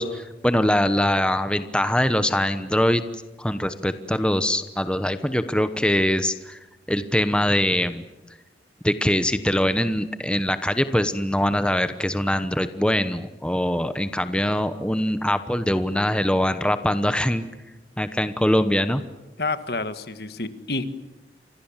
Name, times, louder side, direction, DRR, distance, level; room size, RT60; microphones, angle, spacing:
voice 1, 0.0-3.0 3.4-6.6 6.9-8.0 8.8-17.5 18.0-19.0, left 1 dB, 5° left, 10 dB, 1.0 m, -23 dB
voice 2, 19.4-20.8, left 3 dB, 60° left, 11 dB, 1.8 m, -29 dB
30.0 x 25.5 x 7.4 m, 1.0 s
head